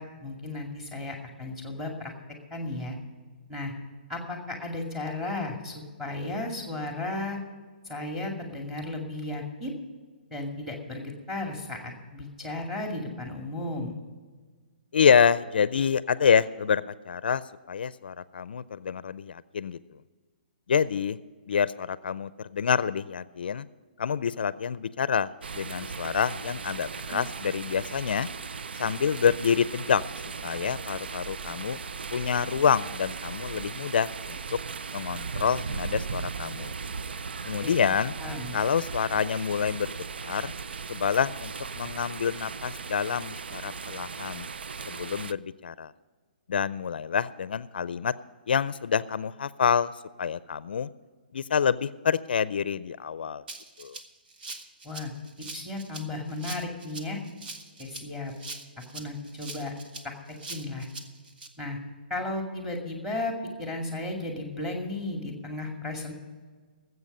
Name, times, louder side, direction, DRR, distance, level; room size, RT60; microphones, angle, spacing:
voice 1, 0.0-2.1 2.5-3.0 3.5-3.7 4.1-7.4 7.8-9.7 10.3-13.9 37.6-37.7 38.2-38.6 54.8-55.1 55.5-57.2 57.8-58.3 58.9-59.7 60.0-60.1 60.5-60.9 61.6-61.8 62.1-63.3 63.6-66.1, left 2 dB, 5° right, 2 dB, 2.3 m, -34 dB
voice 2, 14.9-17.4 17.7-19.8 20.7-21.2 21.5-23.7 24.0-28.3 28.8-30.0 30.4-31.8 32.1-34.4 34.9-36.7 37.5-38.1 38.5-40.5 40.9-44.5 44.9-45.9 46.5-48.1 48.5-49.9 50.2-50.9 51.3-53.4 53.8-54.0, left 7 dB, 70° left, 17 dB, 0.5 m, -27 dB
sound 1, 25.4-45.3, right 5 dB, 85° right, 0.5 m, -37 dB
Rattle (instrument), 53.5-61.5, right 3 dB, 65° right, 1.6 m, -42 dB
18.5 x 8.0 x 5.4 m, 1.5 s
hypercardioid pair, 160°, 5 cm